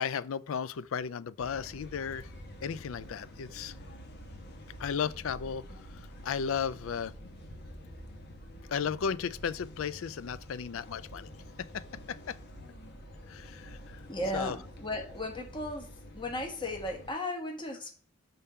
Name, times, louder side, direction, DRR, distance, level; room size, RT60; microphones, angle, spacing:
voice 1, 0.0-2.3 2.6-3.7 4.8-5.6 6.2-7.1 8.7-11.3 11.7-11.8 12.1-12.4 13.3-14.0 14.3-14.6, left 7 dB, 65° left, 0.4 m, -34 dB
sound 1, 1.4-17.1, equal, 50° left, 1.1 m, -48 dB
voice 2, 14.1-15.9 16.1-17.9, left 1 dB, 20° left, 1.3 m, -35 dB
5.4 x 3.7 x 5.5 m
head